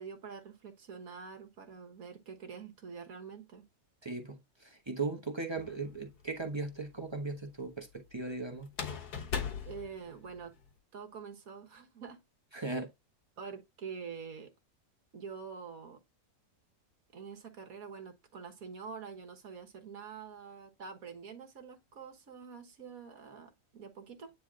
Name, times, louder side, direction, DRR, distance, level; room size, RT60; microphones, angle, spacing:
voice 1, 0.0-3.6 9.7-10.5 10.9-12.2 13.4-14.5 15.1-16.0 17.1-24.3, right 6 dB, 65° right, 1.7 m, -46 dB
voice 2, 4.0-8.7 12.5-12.9, right 3 dB, 20° right, 0.9 m, -38 dB
sound 1, 5.6-6.2 8.7-10.7, left 6 dB, 85° left, 1.8 m, -39 dB
9.5 x 3.3 x 3.7 m
omnidirectional pair, 1.6 m